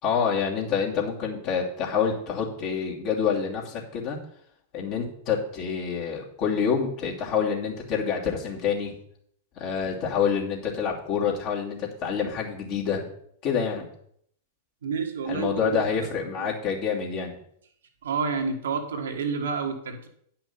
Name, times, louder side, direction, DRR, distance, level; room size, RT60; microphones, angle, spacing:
voice 1, 0.0-4.2 4.7-9.0 9.6-13.1 13.4-13.9 15.2-17.3, left 6 dB, 45° left, -3 dB, 2.8 m, -27 dB
voice 2, 14.8-15.8 16.4-16.5 18.0-20.1, right 5 dB, 75° right, 3 dB, 1.5 m, -29 dB
10.0 x 5.8 x 5.8 m, 0.69 s
hypercardioid pair, 100°, 0 cm